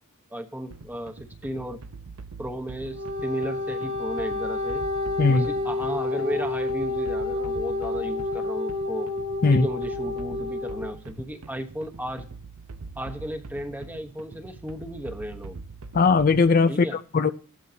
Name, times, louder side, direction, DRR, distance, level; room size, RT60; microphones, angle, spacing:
voice 1, 0.3-1.8 2.4-4.8 5.3-9.1 9.5-12.3 13.0-15.6 16.7-17.0, equal, 10° right, 6 dB, 1.0 m, -34 dB
sound 1, 0.7-16.6, right 4 dB, 85° right, 0.8 m, -43 dB
Wind instrument woodwind instrument, 2.9-10.9, left 2 dB, 60° right, 2.3 m, -29 dB
voice 2, 15.9-16.9 17.1-17.3, left 4 dB, 40° left, 11 dB, 0.4 m, -18 dB
15.5 x 11.5 x 2.8 m, 0.40 s
head